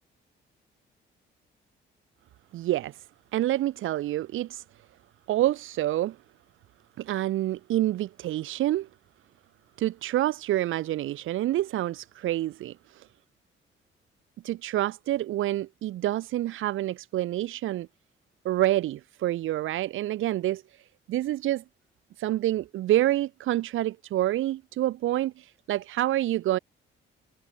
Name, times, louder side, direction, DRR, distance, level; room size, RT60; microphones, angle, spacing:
voice 1, 2.5-3.1 3.3-4.6 5.3-6.2 7.0-8.9 9.8-13.1 14.4-17.9 18.4-21.6 22.2-26.6, right 14 dB, 85° right, 7.2 m, -27 dB
cardioid pair, 90°, 20 cm